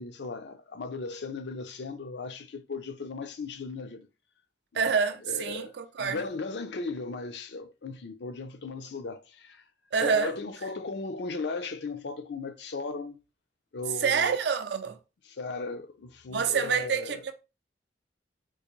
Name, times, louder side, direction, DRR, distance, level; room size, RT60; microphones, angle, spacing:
voice 1, 0.0-4.1 4.7-4.9 5.3-5.7 6.0-9.6 10.0-13.2 13.7-14.4 15.3-17.2, left 3 dB, 65° left, 0.5 m, -37 dB
voice 2, 4.7-6.3 9.9-10.3 14.0-15.0 16.3-17.3, right 6 dB, 60° right, 0.4 m, -27 dB
3.7 x 2.5 x 3.0 m
head